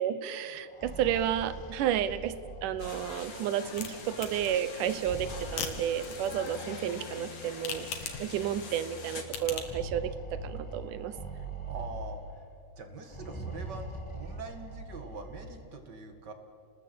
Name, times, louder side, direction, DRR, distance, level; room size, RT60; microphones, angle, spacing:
voice 1, 0.0-2.3 2.6-7.9 8.2-10.1 10.4-11.1, right 10 dB, 75° right, 14 dB, 2.4 m, -31 dB
sound 1, 0.6-3.5 4.8-6.5 7.5-7.6 8.0-8.1 9.4-12.5 13.0-15.6, right 2 dB, 10° left, 1.8 m, -42 dB
sound 2, 2.8-9.2, left 3 dB, 35° left, 2.8 m, -44 dB
sound 3, 3.4-9.8, left 7 dB, 80° left, 3.6 m, -42 dB
voice 2, 11.6-12.2 12.8-16.3, right 4 dB, 35° right, 7 dB, 2.1 m, -43 dB
29.0 x 20.0 x 8.6 m, 2.3 s
omnidirectional pair, 3.8 m